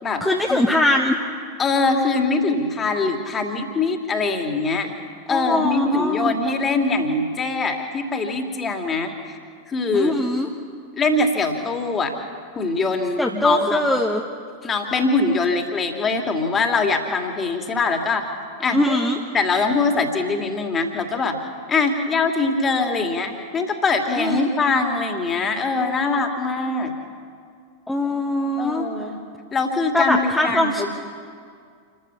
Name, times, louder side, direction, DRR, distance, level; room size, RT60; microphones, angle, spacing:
voice 1, 0.2-1.2 5.3-6.3 9.9-10.5 13.2-14.2 18.7-19.2 24.2-24.5 27.9-28.9 29.9-30.8, left 1 dB, 5° left, 0 dB, 1.4 m, -21 dB
voice 2, 1.6-4.9 5.3-9.4 9.7-10.1 10.9-12.2 12.5-13.9 14.6-18.3 18.6-19.0 19.3-21.4 21.7-26.9 28.6-29.2 29.5-30.9, left 3 dB, 20° left, 5 dB, 2.6 m, -22 dB
28.0 x 14.0 x 7.1 m, 2.2 s
figure-of-eight pair, 90°, 0 cm